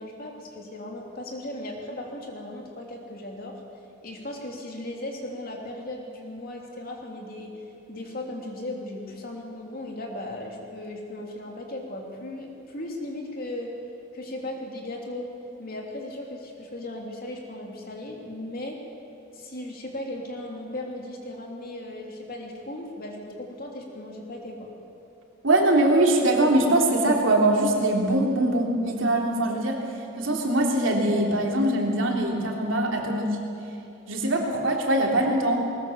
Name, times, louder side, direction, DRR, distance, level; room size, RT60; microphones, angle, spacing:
voice 1, 0.0-3.6 4.0-7.6 7.9-13.8 14.1-15.3 15.6-18.8 19.3-24.7, left 1 dB, 45° left, 0 dB, 3.1 m, -37 dB
voice 2, 25.4-29.8 30.2-33.4 34.1-35.6, right 1 dB, 70° right, 0 dB, 3.2 m, -22 dB
20.0 x 19.5 x 7.2 m, 2.8 s
head